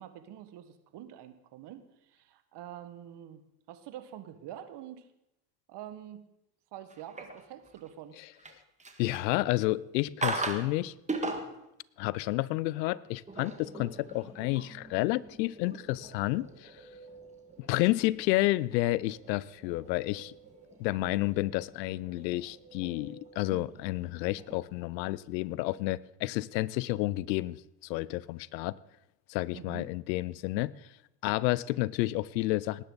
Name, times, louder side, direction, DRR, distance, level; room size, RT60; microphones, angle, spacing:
voice 1, 0.0-3.4 3.7-5.1 5.7-6.2 6.7-8.2 29.5-29.9, right 11 dB, 55° right, 1.6 m, -46 dB
sound 1, 6.9-7.9 8.3-9.5 10.2-10.7 11.1-11.7 13.1-24.6, right 2 dB, 15° right, 1.8 m, -41 dB
voice 2, 9.0-10.9 12.0-16.8 17.6-20.3 20.8-28.8 29.3-30.7 31.2-32.8, left 18 dB, 80° left, 0.6 m, -30 dB
Guitar, 15.6-18.2 18.9-24.3, right 3 dB, 80° right, 5.7 m, -55 dB
19.0 x 10.0 x 4.0 m
hypercardioid pair, 80°, 50 cm